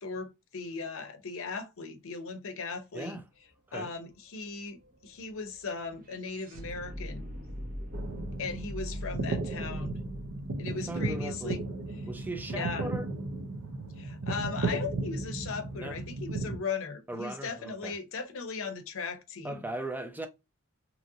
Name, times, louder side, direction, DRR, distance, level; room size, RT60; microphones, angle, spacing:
voice 1, 0.0-3.2 3.7-7.3 8.4-10.1 10.6-11.6 12.5-12.9 14.0-19.6, left 4 dB, 65° left, 0.7 m, -38 dB
voice 2, 2.9-3.2 3.7-3.9 10.7-11.6 12.1-13.1 15.8-16.0 17.1-18.0 19.4-20.3, right 2 dB, 10° right, 0.4 m, -38 dB
sound 1, 3.2-3.3 3.5-11.7, equal, 40° right, 0.8 m, -43 dB
sound 2, 7.9-16.6, right 2 dB, 90° right, 0.6 m, -35 dB
2.9 x 2.6 x 2.6 m
head